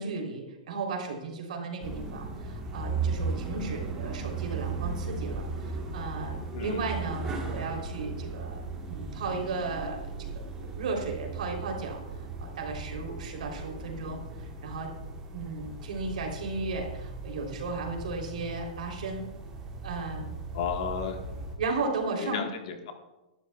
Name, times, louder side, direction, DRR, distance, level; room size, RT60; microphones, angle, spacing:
voice 1, 0.0-14.9 15.3-19.2 19.8-20.3 21.6-22.4, right 3 dB, 70° right, 1 dB, 3.5 m, -35 dB
sound 1, 1.8-21.6, right 4 dB, 15° right, 1.4 m, -37 dB
voice 2, 6.5-6.8 20.5-21.2 22.2-22.9, left 7 dB, 45° left, 4 dB, 1.5 m, -33 dB
18.5 x 12.0 x 2.4 m, 1.0 s
supercardioid pair, 180°, 4 cm